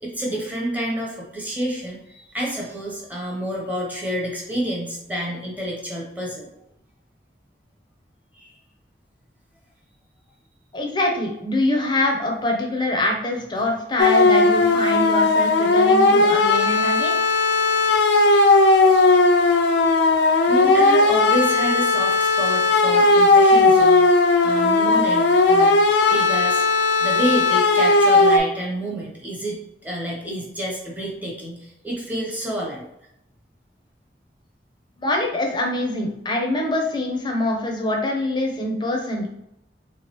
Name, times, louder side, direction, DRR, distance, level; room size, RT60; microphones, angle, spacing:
voice 1, 0.0-6.5 8.3-8.5 20.5-25.8 26.1-26.6 27.0-32.8, equal, 10° right, -2 dB, 0.8 m, -28 dB
voice 2, 10.7-17.1 35.0-39.3, left 1 dB, 25° left, 1 dB, 0.6 m, -24 dB
sound 1, 14.0-28.4, left 3 dB, 75° left, 0.5 m, -16 dB
3.5 x 3.1 x 2.9 m, 0.80 s
head